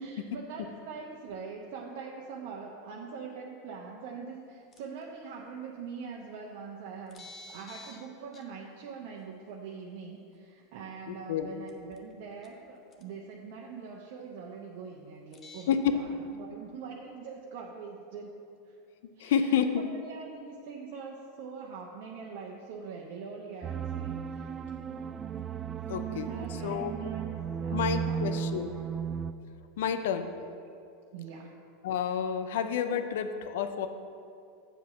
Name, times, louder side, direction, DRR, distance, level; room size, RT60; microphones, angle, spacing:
voice 1, 0.0-18.8 19.2-24.5 26.2-27.2 27.6-28.5 31.1-31.5, right 5 dB, 60° right, -1 dB, 0.9 m, -43 dB
sound 1, 4.7-5.0 6.4-6.5 7.1-8.1 8.3-8.4 10.3-10.4 11.7-12.1 12.4-12.5 12.9-13.0 15.3-15.7, left 2 dB, 30° left, 1.0 m, -49 dB
voice 2, 11.1-11.5 15.7-16.0 19.2-19.9 25.9-26.3 26.6-26.9 27.7-28.7 29.8-30.3 31.8-33.9, left 8 dB, 70° left, 9 dB, 0.5 m, -29 dB
sound 2, 23.6-29.3, right 7 dB, 30° right, 0.3 m, -35 dB
7.9 x 4.8 x 6.8 m, 2.5 s
hypercardioid pair, 90°, 0 cm